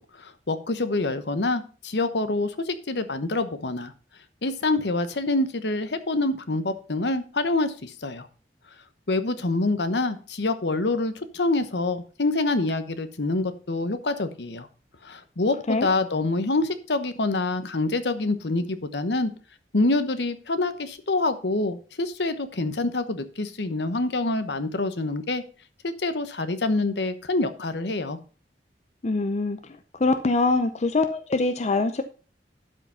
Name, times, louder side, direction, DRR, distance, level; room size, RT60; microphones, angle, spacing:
voice 1, 0.0-3.9 4.4-8.3 9.1-14.7 15.0-19.3 19.7-25.4 25.8-28.2, left 2 dB, 70° left, 11 dB, 1.0 m, -26 dB
voice 2, 29.0-29.6 30.0-32.0, left 3 dB, 40° left, 8 dB, 0.6 m, -23 dB
12.0 x 5.0 x 5.5 m, 0.38 s
head